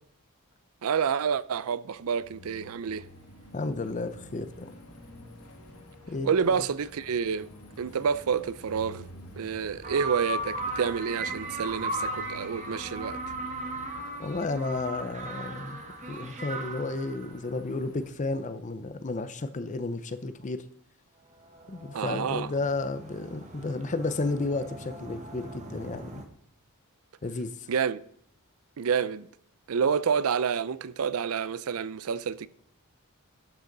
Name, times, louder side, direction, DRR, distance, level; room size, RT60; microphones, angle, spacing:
voice 1, 0.8-3.1 6.2-7.5 7.8-9.1 9.4-13.2 21.9-22.5 27.7-28.0 28.8-29.3 29.7-32.5, right 6 dB, 70° right, 0.4 m, -28 dB
sound 1, 1.9-18.1, left 1 dB, 80° left, 2.1 m, -49 dB
voice 2, 3.5-4.7 6.1-6.6 14.2-15.8 16.1-20.6 21.7-26.2 27.2-27.7, left 3 dB, 35° left, 0.6 m, -32 dB
sound 2, 9.8-17.4 21.4-26.3, right 2 dB, 35° right, 1.2 m, -37 dB
12.0 x 8.0 x 3.9 m
head